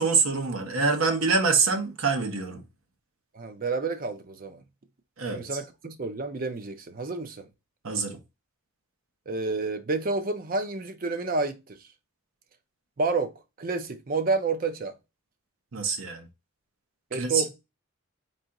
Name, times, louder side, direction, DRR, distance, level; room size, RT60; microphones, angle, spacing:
voice 1, 0.0-2.6 5.2-5.4 7.8-8.2 15.7-16.3 17.1-17.5, right 4 dB, 70° right, 1.0 m, -25 dB
voice 2, 3.3-4.6 5.3-7.5 9.3-11.8 13.0-14.9 17.1-17.5, right 3 dB, 40° right, 0.6 m, -29 dB
4.0 x 2.9 x 3.7 m
head